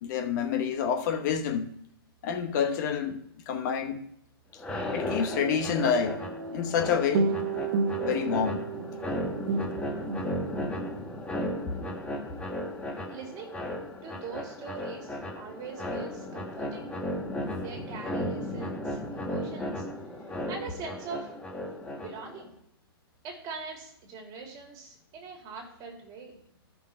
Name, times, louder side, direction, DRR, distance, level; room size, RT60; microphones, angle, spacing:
voice 1, 0.0-1.7 2.2-3.2 3.5-4.0 4.9-6.2 6.5-7.3 8.0-8.6, left 7 dB, 45° left, 1.0 m, -28 dB
sound 1, 4.6-22.4, left 1 dB, 10° left, 1.1 m, -35 dB
sound 2, 5.3-11.0, right 4 dB, 60° right, 0.9 m, -32 dB
voice 2, 13.1-13.6 14.0-16.9 17.5-19.8 20.5-21.3 22.0-22.5 23.2-26.4, right 4 dB, 30° right, 2.7 m, -42 dB
13.5 x 5.8 x 4.3 m
hypercardioid pair, 145°, 13 cm